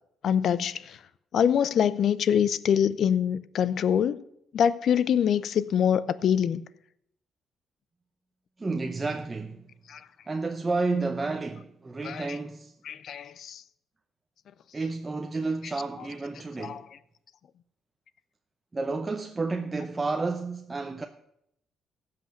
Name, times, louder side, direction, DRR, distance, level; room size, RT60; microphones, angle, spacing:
voice 1, 0.2-1.0 1.3-4.2 4.5-6.6 9.9-10.0 12.0-12.4 12.8-13.6 16.6-16.8, left 8 dB, 65° left, 0.5 m, -25 dB
voice 2, 8.6-9.6 10.3-12.7 14.7-16.8 18.7-21.1, right 3 dB, 25° right, 0.7 m, -31 dB
15.5 x 5.8 x 6.4 m
cardioid pair, 90°, 0 cm